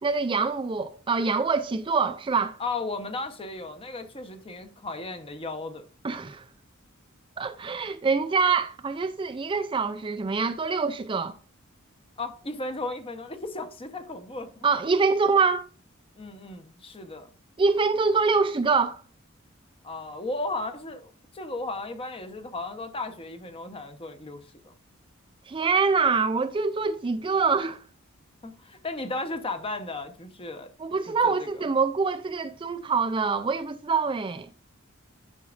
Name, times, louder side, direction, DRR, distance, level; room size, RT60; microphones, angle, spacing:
voice 1, 0.0-2.6 6.0-6.4 7.4-11.3 14.6-15.6 17.6-19.0 25.5-27.8 30.8-34.5, right 4 dB, 25° right, 0.4 m, -25 dB
voice 2, 2.6-5.9 12.2-14.7 16.2-17.3 19.8-24.8 28.4-30.7 31.1-31.6, left 2 dB, 25° left, 0.9 m, -35 dB
9.9 x 6.0 x 2.5 m
head